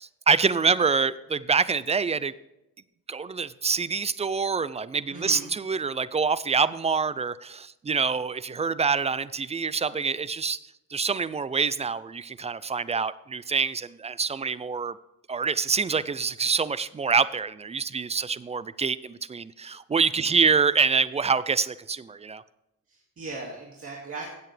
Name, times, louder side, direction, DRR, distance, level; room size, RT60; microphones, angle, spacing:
voice 1, 0.0-2.3 3.1-10.6 10.9-14.9 15.3-22.4, right 5 dB, 20° right, 16 dB, 0.4 m, -26 dB
voice 2, 5.1-5.5 20.3-20.4 22.9-24.3, right 3 dB, 40° right, -2 dB, 2.2 m, -38 dB
16.0 x 8.0 x 3.3 m, 0.90 s
cardioid pair, 125°, 36 cm